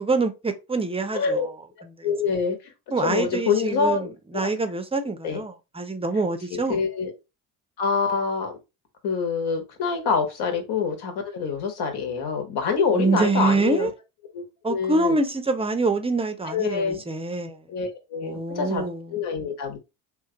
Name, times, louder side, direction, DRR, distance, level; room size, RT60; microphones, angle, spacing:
voice 1, 0.0-1.5 1.8-1.9 2.9-4.1 4.3-6.8 12.9-13.9 14.6-17.6 18.2-19.2, right 3 dB, 10° right, 0.6 m, -25 dB
voice 2, 1.1-1.5 2.0-2.6 3.0-4.5 5.2-5.4 6.5-7.1 7.8-8.5 9.0-13.9 14.3-15.2 16.5-17.0 17.7-18.8 19.1-19.8, left 5 dB, 55° left, 1.3 m, -26 dB
3.1 x 2.3 x 3.7 m
hypercardioid pair, 60°, 46 cm